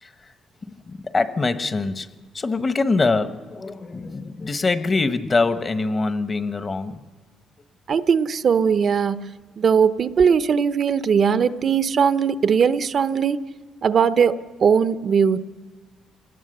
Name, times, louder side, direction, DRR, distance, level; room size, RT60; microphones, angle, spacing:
voice 1, 0.9-2.1 2.3-7.0, left 3 dB, 30° left, 11 dB, 1.2 m, -23 dB
voice 2, 7.9-9.2 9.6-13.4 13.8-15.4, right 6 dB, 55° right, 12 dB, 0.8 m, -19 dB
27.5 x 19.0 x 6.7 m, 1.4 s
cardioid pair, 90°, 0 cm